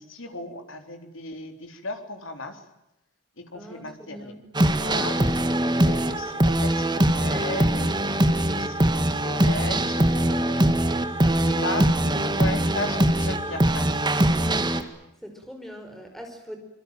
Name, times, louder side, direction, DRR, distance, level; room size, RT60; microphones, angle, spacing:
voice 1, 0.0-2.6 3.4-4.3 4.8-8.0 8.5-10.7 11.2-13.9, left 2 dB, 90° left, 6 dB, 3.9 m, -36 dB
voice 2, 3.5-4.4 15.2-16.6, equal, ahead, 4 dB, 5.3 m, -42 dB
sound 1, 4.5-14.8, right 1 dB, 20° right, 1.8 m, -22 dB
25.5 x 23.5 x 9.2 m, 0.86 s
head